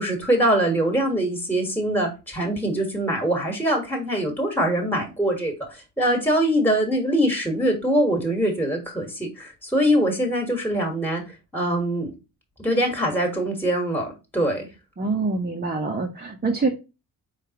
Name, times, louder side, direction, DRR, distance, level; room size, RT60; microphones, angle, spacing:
voice 1, 0.0-12.1 12.6-14.7, right 1 dB, 5° left, 3 dB, 1.6 m, -23 dB
voice 2, 15.0-16.7, right 3 dB, 25° right, 0 dB, 0.9 m, -25 dB
4.7 x 3.5 x 3.0 m, 0.28 s
cardioid pair, 65°, 40 cm